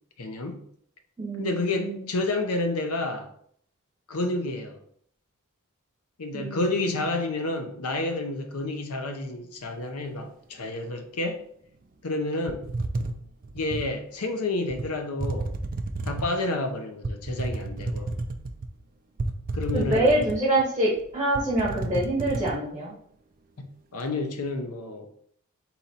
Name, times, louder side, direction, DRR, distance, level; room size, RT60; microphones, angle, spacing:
voice 1, 0.2-0.6 1.4-3.3 4.1-4.8 6.2-11.4 12.0-12.7 13.5-15.5 16.1-18.1 19.5-20.1 23.9-25.1, left 2 dB, 90° left, 0.7 m, -29 dB
voice 2, 1.2-2.1 6.3-7.1 19.7-22.9, right 1 dB, 15° right, 1.0 m, -26 dB
sound 1, 12.5-13.9 14.7-14.9 15.2-16.4 17.0-18.7 19.2-20.6 21.0-21.1 21.3-22.5, right 2 dB, 40° right, 0.4 m, -31 dB
4.1 x 2.9 x 3.9 m
head